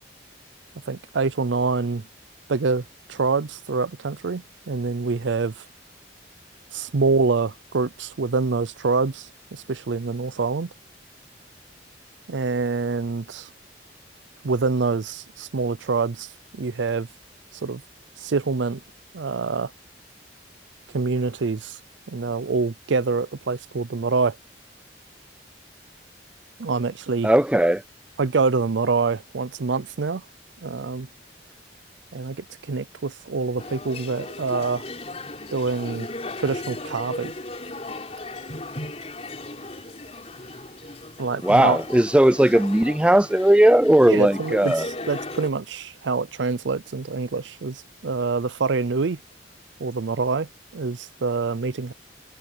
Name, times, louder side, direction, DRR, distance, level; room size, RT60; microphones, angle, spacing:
voice 1, 0.9-2.0 2.5-2.8 3.1-5.6 6.7-10.7 12.3-13.5 14.4-17.1 17.5-17.8 18.2-18.8 19.1-19.7 20.9-21.8 22.1-24.4 26.6-27.3 28.2-30.2 30.6-31.1 32.1-34.9 35.5-36.1 36.4-37.3 41.2-41.8 44.1-49.2 49.8-51.9, right 4 dB, 85° right, 0.6 m, -26 dB
voice 2, 27.2-27.8 41.4-44.9, right 1 dB, 5° right, 0.4 m, -17 dB
sound 1, 33.6-45.5, left 2 dB, 35° left, 3.9 m, -36 dB
head